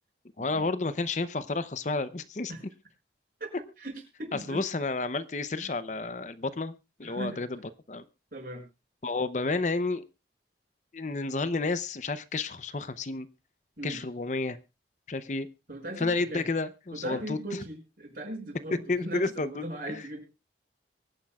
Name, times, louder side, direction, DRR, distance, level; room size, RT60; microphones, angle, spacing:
voice 1, 0.4-2.5 4.3-6.7 7.0-7.6 7.9-8.1 9.0-10.0 10.9-13.3 13.8-14.6 15.1-15.5 16.0-17.4 18.9-20.0, left 3 dB, 40° left, 13 dB, 0.6 m, -31 dB
voice 2, 3.8-4.6 5.6-5.7 7.0-7.4 8.3-8.6 13.8-14.0 15.7-16.4 16.9-20.2, right 1 dB, 50° right, 2 dB, 5.7 m, -38 dB
23.5 x 10.0 x 2.3 m, 0.27 s
head